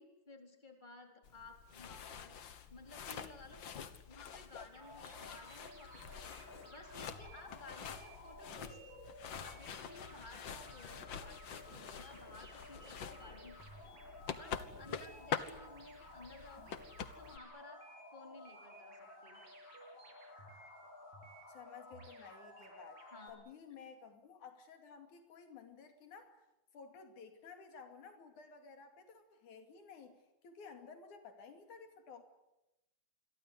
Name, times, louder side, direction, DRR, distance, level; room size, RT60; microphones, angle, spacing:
voice 1, 0.0-2.4 2.7-3.6 4.1-6.3 6.7-8.8 9.3-13.6 14.3-16.8 17.2-17.8 18.1-19.4 23.1-23.3, left 2 dB, 15° left, 4 dB, 3.9 m, -56 dB
sound 1, 1.2-17.4, left 7 dB, 50° left, 1.6 m, -47 dB
sound 2, 4.7-23.3, left 1 dB, 70° right, 9.3 m, -54 dB
voice 2, 13.0-13.5 21.5-26.5 26.7-32.2, left 5 dB, 90° left, 6 dB, 4.1 m, -55 dB
27.5 x 22.5 x 8.2 m, 0.94 s
omnidirectional pair, 3.3 m